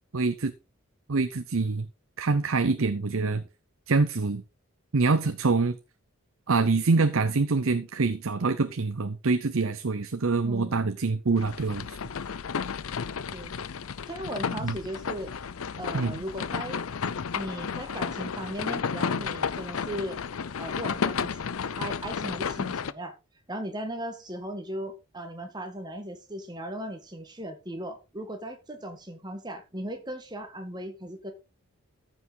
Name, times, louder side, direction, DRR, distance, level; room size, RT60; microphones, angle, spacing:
voice 1, 0.1-0.5 1.1-1.9 2.2-3.4 3.9-4.4 4.9-5.8 6.5-12.0 14.6-14.8 15.9-16.2, right 3 dB, 70° right, 0.7 m, -25 dB
voice 2, 10.4-10.9 13.3-13.5 14.1-15.3 15.8-16.8 17.3-20.2 20.6-21.3 21.8-23.1 23.5-31.3, right 1 dB, 20° right, 1.8 m, -37 dB
sound 1, 11.4-22.9, left 6 dB, 75° left, 0.6 m, -32 dB
14.0 x 6.0 x 4.1 m
head